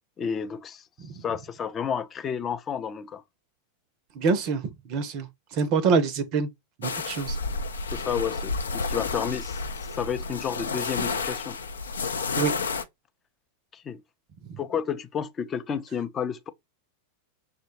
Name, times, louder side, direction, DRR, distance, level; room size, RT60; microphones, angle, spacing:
voice 1, 0.2-0.8 1.2-3.2 7.9-11.6 13.7-14.0 14.6-16.5, left 7 dB, 25° left, 0.5 m, -31 dB
voice 2, 4.2-6.5 6.8-7.4 12.4-12.5, right 5 dB, 40° right, 0.5 m, -25 dB
sound 1, 6.8-12.8, left 4 dB, 70° left, 0.5 m, -31 dB
5.9 x 2.1 x 2.9 m
figure-of-eight pair, 90°, 0 cm